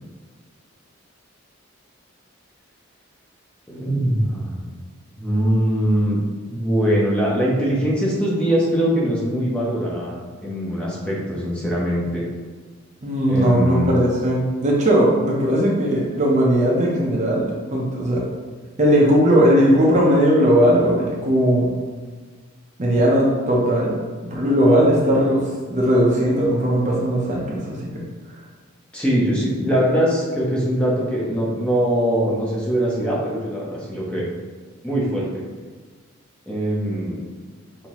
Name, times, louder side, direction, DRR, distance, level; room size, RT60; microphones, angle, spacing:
voice 1, 3.7-4.7 5.2-6.2 6.5-10.1 10.4-12.2 13.3-14.0 28.9-34.3 34.8-35.4 36.5-37.2, equal, 5° left, -6 dB, 0.8 m, -22 dB
voice 2, 13.0-18.2 18.8-21.7 22.8-23.9 24.3-28.0, equal, 35° right, -4 dB, 0.7 m, -18 dB
5.6 x 2.8 x 3.0 m, 1.5 s
head